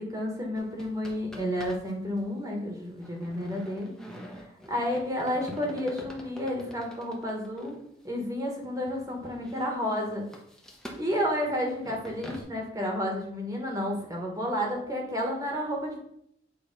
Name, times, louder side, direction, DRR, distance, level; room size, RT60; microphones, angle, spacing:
voice 1, 0.0-3.9 4.7-7.7 8.0-10.3 11.0-16.0, equal, 20° right, 0 dB, 1.3 m, -31 dB
sound 1, 0.6-1.9 2.2-2.3 3.0-7.8 8.4-8.5 9.1-12.4, equal, 5° left, 0.9 m, -45 dB
8.5 x 3.2 x 5.3 m, 0.73 s
head